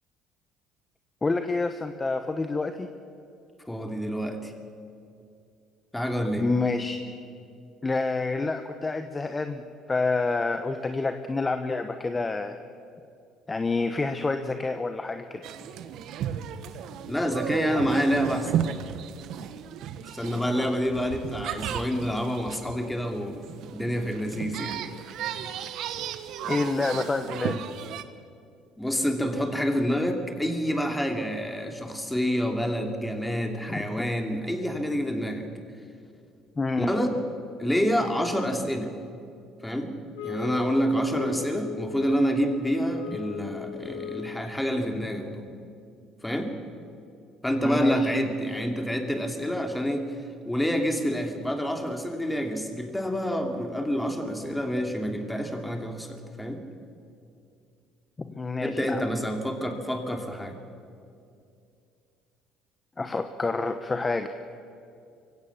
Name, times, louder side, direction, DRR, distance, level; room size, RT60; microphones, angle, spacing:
voice 1, 1.2-2.9 6.4-7.0 7.8-9.6 9.9-12.6 13.5-15.4 26.4-27.6 33.7-33.8 36.6-36.9 47.6-48.2 58.3-59.0 63.0-64.3, left 3 dB, 20° left, 8 dB, 1.1 m, -28 dB
voice 2, 3.7-4.5 5.9-6.5 17.1-18.6 20.1-23.5 23.7-24.8 28.8-35.5 36.8-37.2 37.6-38.9 39.6-39.9 40.2-45.4 46.2-46.5 47.4-50.0 50.4-56.6 58.6-60.5, equal, 5° left, 4 dB, 2.9 m, -28 dB
sound 1, 15.4-28.0, right 9 dB, 65° right, 1.1 m, -34 dB
sound 2, 40.1-44.5, left 10 dB, 90° left, 3.4 m, -38 dB
23.5 x 16.5 x 7.3 m, 2.5 s
supercardioid pair, 85°, 0 cm